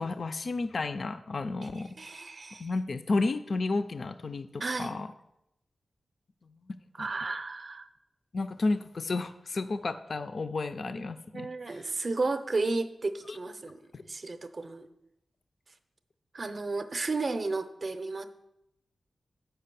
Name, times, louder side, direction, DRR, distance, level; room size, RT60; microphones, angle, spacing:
voice 1, 0.0-1.9 2.6-5.1 7.0-7.1 8.3-11.5 13.3-13.4 13.9-14.0, left 3 dB, 45° left, 11 dB, 0.3 m, -32 dB
voice 2, 1.7-2.7 4.6-5.0 7.0-7.9 10.9-11.0 11.3-14.9 16.3-18.3, right 3 dB, 40° right, 9 dB, 0.5 m, -33 dB
7.5 x 5.6 x 6.7 m, 0.86 s
wide cardioid pair, 165°, 0 cm